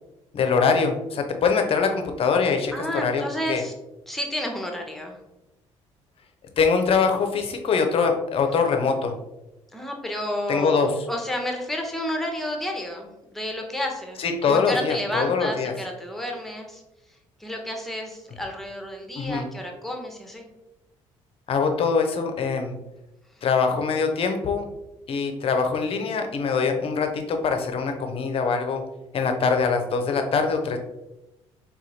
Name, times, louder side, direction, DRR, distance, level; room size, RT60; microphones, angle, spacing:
voice 1, 0.3-3.2 3.5-3.6 6.6-9.1 10.5-10.9 14.2-15.7 19.2-19.5 21.5-22.8 23.4-24.7 25.1-28.8 29.1-30.8, left 5 dB, 35° left, 5 dB, 0.6 m, -23 dB
voice 2, 2.7-3.7 4.1-5.2 9.7-16.8 17.4-20.5, left 1 dB, ahead, 2 dB, 0.7 m, -31 dB
4.8 x 2.3 x 2.7 m, 0.95 s
figure-of-eight pair, 45°, 16 cm